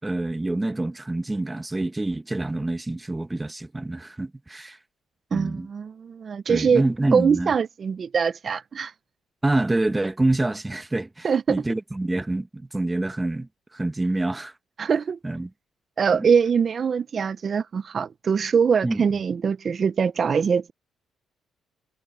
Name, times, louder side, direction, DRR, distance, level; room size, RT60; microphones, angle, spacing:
voice 1, 0.0-4.8 5.3-5.7 6.5-7.5 9.4-13.5 13.7-14.5 15.2-15.5 16.2-16.3 18.8-19.2, right 2 dB, 15° right, 1.1 m, -26 dB
voice 2, 5.3-6.8 7.1-8.9 11.2-11.6 14.8-15.2 16.0-20.7, right 6 dB, 45° right, 0.6 m, -23 dB
cardioid pair, 90°, 0 cm